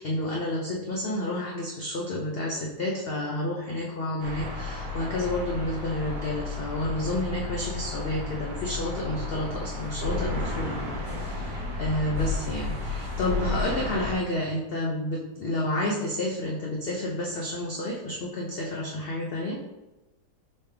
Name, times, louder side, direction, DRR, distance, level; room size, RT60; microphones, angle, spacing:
voice 1, 0.0-19.6, left 1 dB, 85° left, -3 dB, 0.5 m, -30 dB
sound 1, 4.2-14.2, left 3 dB, 80° right, 1.6 m, -32 dB
4.1 x 3.3 x 3.3 m, 1.0 s
omnidirectional pair, 1.8 m